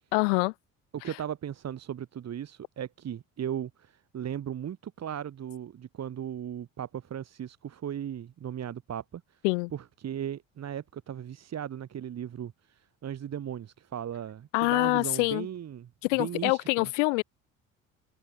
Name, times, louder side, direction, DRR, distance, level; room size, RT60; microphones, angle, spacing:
voice 1, 0.1-0.5 9.4-9.7 14.5-15.5 16.0-17.2, left 28 dB, 65° left, 0.6 m, -25 dB
voice 2, 0.9-9.4 9.7-15.9 16.2-16.9, right 9 dB, 40° right, 2.4 m, -37 dB
figure-of-eight pair, 55°, 40 cm